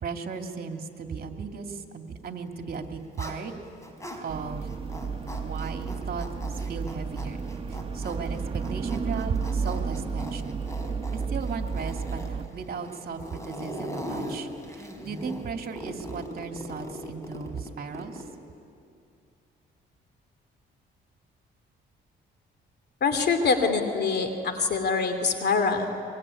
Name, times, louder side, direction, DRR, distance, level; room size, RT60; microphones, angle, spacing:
voice 1, 0.0-3.5 4.2-4.7 5.4-6.3 6.6-7.4 7.7-10.7 11.1-18.2, right 5 dB, 50° right, 4 dB, 2.6 m, -36 dB
Zipper (clothing), 2.6-4.2 4.6-18.4, equal, 15° left, 4.8 m, -40 dB
sound 1, 4.3-12.5, right 5 dB, 25° right, 1.3 m, -32 dB
voice 2, 23.0-25.9, left 4 dB, 55° left, 6 dB, 2.8 m, -24 dB
23.5 x 23.0 x 9.9 m, 2.5 s
cardioid pair, 90°, 20 cm